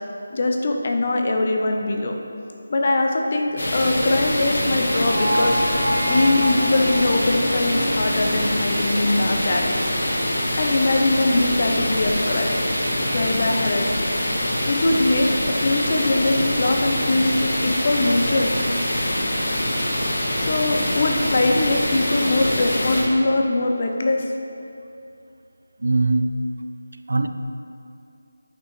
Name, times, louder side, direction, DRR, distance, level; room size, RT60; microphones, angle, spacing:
voice 1, 0.3-2.1 2.7-5.8 6.0-9.9 10.6-12.5 13.1-14.1 14.7-18.5 20.4-24.2, left 2 dB, 40° left, 3 dB, 0.8 m, -22 dB
sound 1, 3.5-9.6, equal, 5° right, 2.4 m, -28 dB
sound 2, 3.6-23.0, left 1 dB, 70° left, 2.2 m, -24 dB
voice 2, 19.8-20.3 25.8-26.3 27.1-27.3, right 3 dB, 80° right, 8 dB, 0.6 m, -23 dB
10.5 x 5.6 x 4.8 m, 2.5 s
figure-of-eight pair, 170°, 0 cm